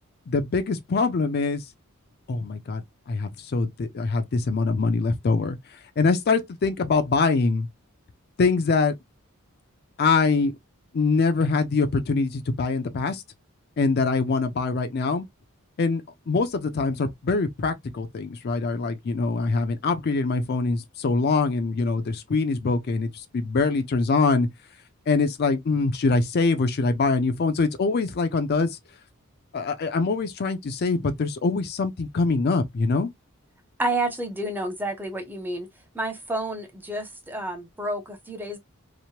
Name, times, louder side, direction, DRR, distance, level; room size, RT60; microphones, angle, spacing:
voice 1, 0.3-1.6 2.3-5.6 6.0-7.7 8.4-8.9 10.0-10.5 10.9-13.2 13.8-15.3 15.8-16.0 16.3-24.5 25.1-28.7 29.5-33.1, left 4 dB, 50° left, 0.4 m, -24 dB
voice 2, 33.8-35.7 35.9-38.6, right 1 dB, 10° right, 0.6 m, -30 dB
2.9 x 2.1 x 2.7 m
head